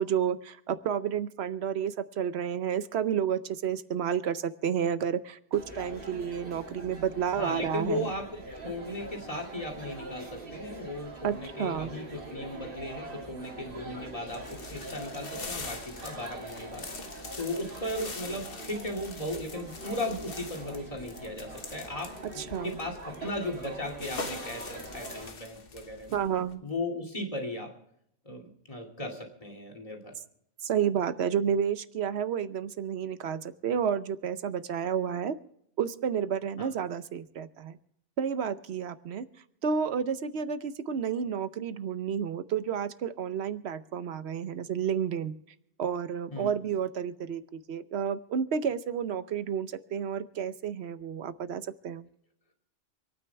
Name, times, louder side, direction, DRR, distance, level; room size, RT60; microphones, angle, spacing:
voice 1, 0.0-8.1 11.2-11.9 22.2-22.8 26.1-26.6 30.6-35.4 35.8-37.8 38.2-39.2 39.6-45.4 45.8-52.1, right 8 dB, 75° right, 13 dB, 1.0 m, -31 dB
sound 1, 5.5-25.3, right 2 dB, 55° right, 2.3 m, -43 dB
voice 2, 7.3-16.9 17.4-22.2 22.6-26.2 26.6-27.7 28.2-30.1 36.6-36.7 46.3-46.6, left 1 dB, 30° left, 0 dB, 2.6 m, -36 dB
sound 2, 14.3-26.6, left 4 dB, 60° left, 1.5 m, -44 dB
27.5 x 9.3 x 3.4 m, 0.73 s
omnidirectional pair, 1.1 m